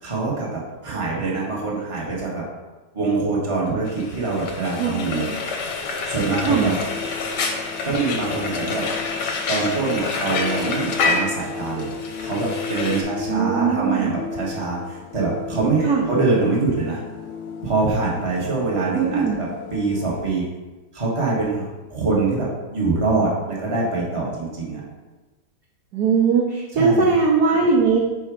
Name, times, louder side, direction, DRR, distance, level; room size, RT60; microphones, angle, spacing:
voice 1, 0.0-2.4 2.9-5.3 6.1-6.7 7.8-8.9 9.5-17.0 17.6-20.5 20.9-24.8 26.7-27.1, right 3 dB, 20° right, -5 dB, 1.1 m, -24 dB
Frying (food), 3.9-13.0, left 4 dB, 65° left, 1.2 m, -28 dB
voice 2, 4.8-5.4 6.4-6.7 13.3-14.1 15.8-16.0 18.9-19.4 25.9-28.0, right 5 dB, 65° right, -1 dB, 1.0 m, -20 dB
sound 1, 6.2-20.3, left 6 dB, 85° left, 0.8 m, -35 dB
4.9 x 4.5 x 4.7 m, 1.2 s
omnidirectional pair, 2.3 m